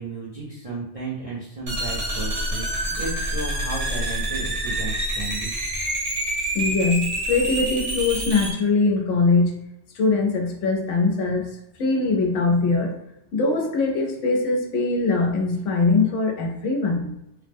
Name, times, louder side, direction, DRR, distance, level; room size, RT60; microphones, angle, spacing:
voice 1, 0.0-5.5, right 3 dB, 40° right, -8 dB, 0.6 m, -34 dB
sound 1, 1.7-8.5, right 1 dB, 70° right, 1.4 m, -27 dB
voice 2, 6.5-9.5 9.9-11.5 11.8-12.9 13.3-17.1, left 3 dB, 90° left, 1 dB, 1.0 m, -22 dB
3.0 x 2.0 x 3.4 m, 0.84 s
omnidirectional pair, 1.2 m